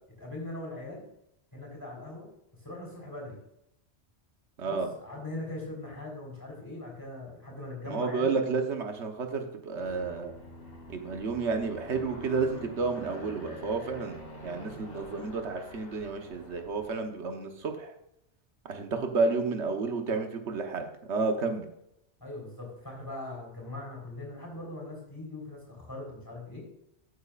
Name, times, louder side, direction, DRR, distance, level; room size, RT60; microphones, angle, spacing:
voice 1, 0.2-1.0 1.5-2.3 2.6-3.4 4.7-8.4 22.2-26.7, left 2 dB, 15° left, -2 dB, 3.7 m, -40 dB
voice 2, 4.6-4.9 7.9-10.3 10.9-17.9 18.7-21.7, right 4 dB, 75° right, 5 dB, 1.4 m, -31 dB
Aircraft, 9.8-17.1, left 1 dB, 85° left, 3.5 m, -46 dB
14.0 x 8.4 x 2.4 m, 0.78 s
omnidirectional pair, 1.2 m